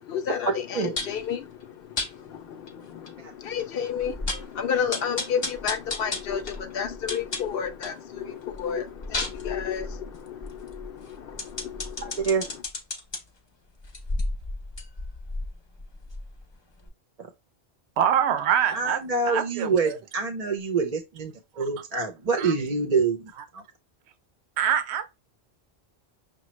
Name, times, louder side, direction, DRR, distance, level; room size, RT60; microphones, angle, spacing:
voice 1, 0.0-12.6, left 7 dB, 65° left, 0.7 m, -32 dB
sound 1, 1.0-1.2 2.0-2.1 2.7-2.8 3.1-3.2 3.6-3.7 4.0-4.5 4.9-8.0 8.4-13.2 13.8-16.5 16.8-16.9, left 2 dB, 30° left, 0.6 m, -33 dB
voice 2, 12.0-12.4 18.7-23.6, right 4 dB, 45° right, 0.6 m, -26 dB
voice 3, 18.0-19.0 19.3-20.0 21.5-21.6 22.4-22.5 24.6-25.0, right 9 dB, 85° right, 0.8 m, -25 dB
5.8 x 2.3 x 3.1 m
omnidirectional pair, 1.1 m